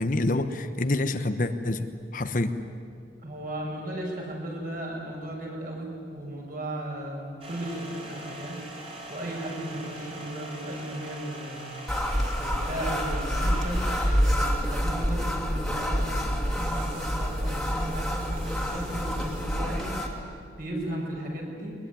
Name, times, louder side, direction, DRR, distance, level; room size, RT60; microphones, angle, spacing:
voice 1, 0.0-2.6, left 2 dB, 45° left, 9 dB, 1.0 m, -27 dB
voice 2, 3.2-8.6 9.1-11.7 12.4-21.8, right 1 dB, 50° right, -1 dB, 6.8 m, -35 dB
sound 1, 7.4-14.4 16.6-19.6, right 1 dB, 30° right, 3.8 m, -43 dB
sound 2, 11.9-20.1, equal, ahead, 2.8 m, -27 dB
22.5 x 21.5 x 10.0 m, 2.3 s
head